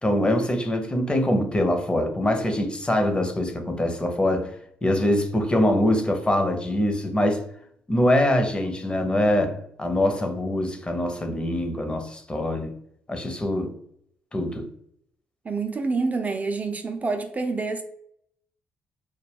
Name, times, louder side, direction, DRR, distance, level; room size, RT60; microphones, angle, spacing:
voice 1, 0.0-4.5 4.8-7.4 7.9-12.7 13.1-13.7 14.3-14.7, left 1 dB, 20° left, 0.7 m, -23 dB
voice 2, 15.4-17.8, right 3 dB, 35° right, 0.4 m, -27 dB
2.3 x 2.1 x 3.3 m
hypercardioid pair, 50°, 5 cm